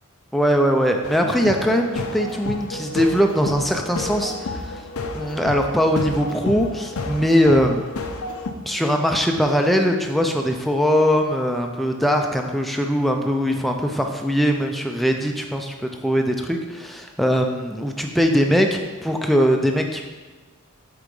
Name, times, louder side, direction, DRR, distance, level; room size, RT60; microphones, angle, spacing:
voice 1, 0.3-4.8 5.1-7.8 8.7-15.7 16.0-20.0, equal, ahead, 3 dB, 0.4 m, -21 dB
sound 1, 1.0-8.5, left 2 dB, 85° left, 0.7 m, -30 dB
7.9 x 3.8 x 5.3 m, 1.4 s
head